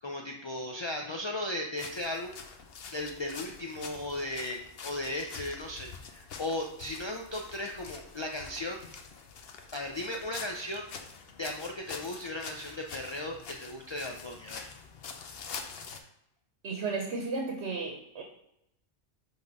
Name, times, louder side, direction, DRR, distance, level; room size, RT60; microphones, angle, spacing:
voice 1, 0.0-2.4 2.9-8.8 9.7-10.9 11.4-14.7, left 1 dB, 40° left, 2 dB, 0.4 m, -36 dB
sound 1, 1.8-16.0, left 5 dB, 60° left, 0.9 m, -46 dB
voice 2, 16.6-18.2, right 3 dB, 75° right, 2 dB, 1.1 m, -34 dB
5.9 x 3.7 x 5.2 m, 0.83 s
omnidirectional pair, 1.1 m